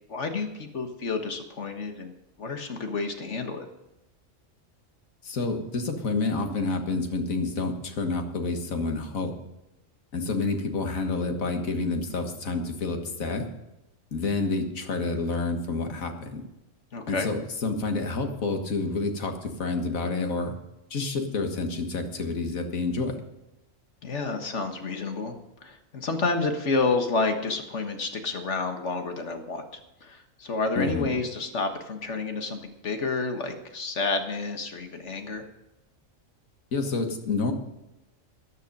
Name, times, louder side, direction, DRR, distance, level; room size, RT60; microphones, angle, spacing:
voice 1, 0.1-2.1 2.4-3.7 16.9-17.3 24.0-25.3 25.6-29.6 30.0-35.4, left 3 dB, 60° left, 5 dB, 1.7 m, -29 dB
voice 2, 5.2-9.3 10.1-13.5 14.1-16.4 17.1-20.5 20.9-23.2 30.8-31.2 36.7-37.5, left 3 dB, 90° left, 5 dB, 1.9 m, -29 dB
14.0 x 10.0 x 5.4 m, 0.94 s
omnidirectional pair, 1.4 m